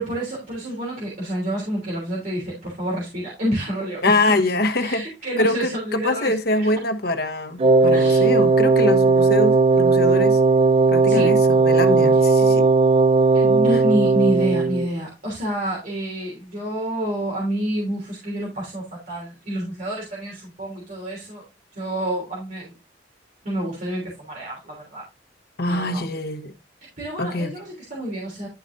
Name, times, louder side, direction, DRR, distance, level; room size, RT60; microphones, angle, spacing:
voice 1, 0.0-4.5 4.8-6.8 7.9-8.3 11.1-11.4 12.2-12.3 13.3-21.4 21.7-22.7 23.4-25.0 25.6-26.0 27.0-28.5, right 1 dB, 50° right, 3.3 m, -28 dB
voice 2, 4.0-5.1 5.4-10.4 10.9-12.7 25.6-26.5 27.2-27.5, left 2 dB, 60° left, 1.1 m, -24 dB
Wind instrument woodwind instrument, 7.6-14.9, right 3 dB, 30° right, 0.3 m, -17 dB
11.5 x 5.0 x 2.7 m
head